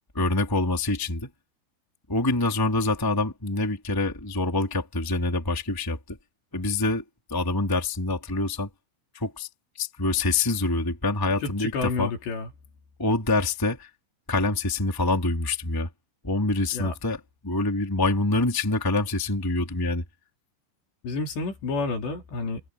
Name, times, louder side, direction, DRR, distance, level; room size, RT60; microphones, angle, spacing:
voice 1, 0.1-1.3 2.1-6.2 6.5-7.0 7.3-8.7 9.1-9.5 9.8-12.1 13.0-13.9 14.3-15.9 16.2-20.0, left 2 dB, 5° left, 2.2 m, -26 dB
voice 2, 11.4-12.5 16.7-16.9 21.0-22.6, left 3 dB, 60° left, 6.0 m, -30 dB
omnidirectional pair, 5.8 m